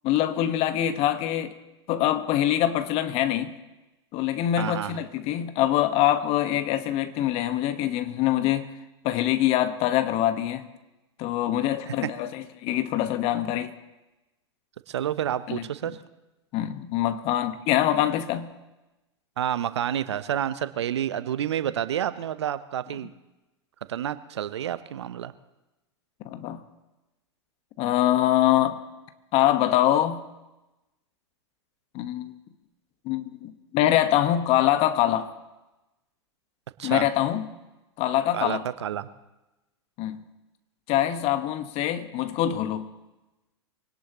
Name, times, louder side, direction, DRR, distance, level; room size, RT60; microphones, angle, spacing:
voice 1, 0.0-1.5 1.9-3.5 4.1-8.7 9.0-10.7 11.2-13.7 15.5-15.6 16.5-18.5 26.2-26.6 27.8-28.8 29.3-30.2 31.9-32.3 33.0-35.3 36.8-37.5 38.0-38.6 40.0-40.2 40.9-42.9, left 12 dB, 45° left, 1.4 m, -24 dB
voice 2, 4.6-4.9 12.0-12.1 14.9-16.0 19.4-23.1 23.9-25.3 36.8-37.1 38.3-39.1, right 10 dB, 70° right, 0.8 m, -29 dB
24.0 x 18.0 x 3.1 m
hypercardioid pair, 95°, 15 cm